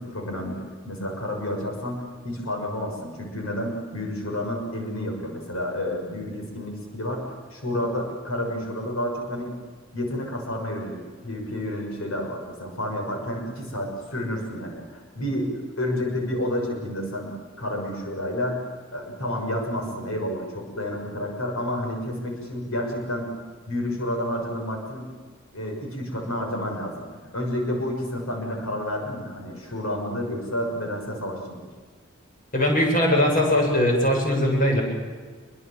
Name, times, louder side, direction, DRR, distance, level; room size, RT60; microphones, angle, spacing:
voice 1, 0.0-9.6 9.9-18.6 18.9-23.3 23.7-25.1 25.5-27.1 27.3-31.6, left 1 dB, 85° left, 2 dB, 6.5 m, -30 dB
voice 2, 32.5-34.8, left 1 dB, 40° left, 1 dB, 7.9 m, -20 dB
28.0 x 23.5 x 7.5 m, 1.5 s
head